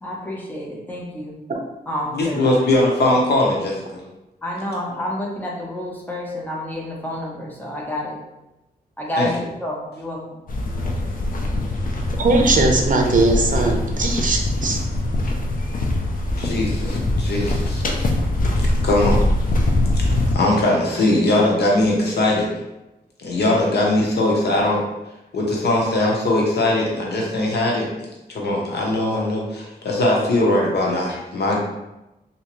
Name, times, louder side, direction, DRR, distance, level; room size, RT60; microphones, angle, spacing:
voice 1, 0.0-1.4 1.9-2.4 4.4-8.2 9.0-10.4, left 1 dB, 10° left, -3 dB, 0.8 m, -29 dB
voice 2, 2.1-3.8 9.2-9.3 16.4-17.8 18.8-19.2 20.3-22.5 23.2-24.8 25.3-27.9 28.3-31.6, left 1 dB, 90° left, -2 dB, 0.8 m, -20 dB
sound 1, 10.5-20.3, left 1 dB, 55° left, 0.5 m, -22 dB
voice 3, 12.2-14.8, right 2 dB, 55° right, 2 dB, 0.6 m, -19 dB
3.3 x 2.7 x 3.0 m, 0.96 s
wide cardioid pair, 115°, 17 cm